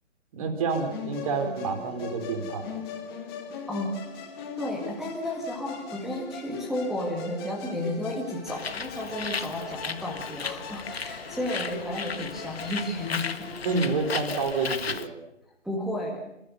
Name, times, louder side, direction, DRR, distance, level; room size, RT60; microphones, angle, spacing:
voice 1, 0.3-2.7 13.6-15.1, right 4 dB, 30° right, 6 dB, 3.7 m, -28 dB
Musical instrument, 0.7-14.5, left 6 dB, 20° left, 2.5 m, -40 dB
voice 2, 4.6-13.3 15.6-16.3, left 1 dB, ahead, -1 dB, 1.8 m, -32 dB
Bird, 8.5-15.1, left 5 dB, 55° left, 1.7 m, -35 dB
29.0 x 14.5 x 6.8 m, 0.85 s
figure-of-eight pair, 150°, 37 cm